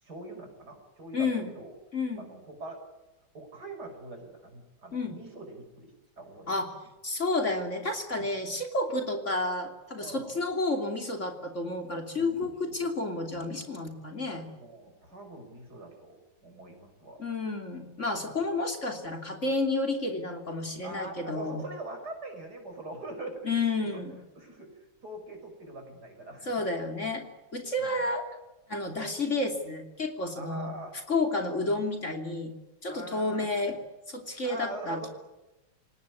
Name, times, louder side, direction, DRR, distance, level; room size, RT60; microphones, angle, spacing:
voice 1, 0.0-1.8 2.2-2.8 3.3-6.6 8.2-8.3 10.0-10.4 12.1-12.4 14.5-17.2 18.3-18.5 20.8-23.5 23.8-24.0 24.3-26.5 27.8-28.0 30.3-30.9 32.9-33.5 34.4-35.1, right 2 dB, 55° right, 4 dB, 6.7 m, -43 dB
voice 2, 1.1-1.5 1.9-2.3 4.9-5.2 6.5-6.7 7.0-14.5 17.2-21.6 23.4-24.2 26.5-27.3 27.5-28.3 28.7-30.7 31.1-32.5 32.8-33.8 34.1-35.1, left 2 dB, 40° left, 4 dB, 3.3 m, -31 dB
28.5 x 18.0 x 9.8 m, 1.0 s
omnidirectional pair, 2.1 m